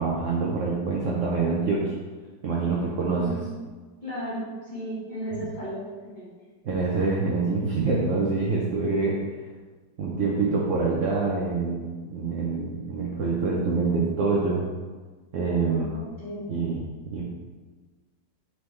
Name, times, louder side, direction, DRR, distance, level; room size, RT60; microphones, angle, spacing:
voice 1, 0.0-1.9 2.4-3.4 6.6-9.2 10.0-14.6 15.3-15.9 16.5-17.2, right 4 dB, 80° right, -4 dB, 0.7 m, -26 dB
voice 2, 3.1-3.6 4.0-6.3 15.5-16.5, equal, 30° left, -9 dB, 0.9 m, -35 dB
4.2 x 3.4 x 3.2 m, 1.3 s
omnidirectional pair, 2.1 m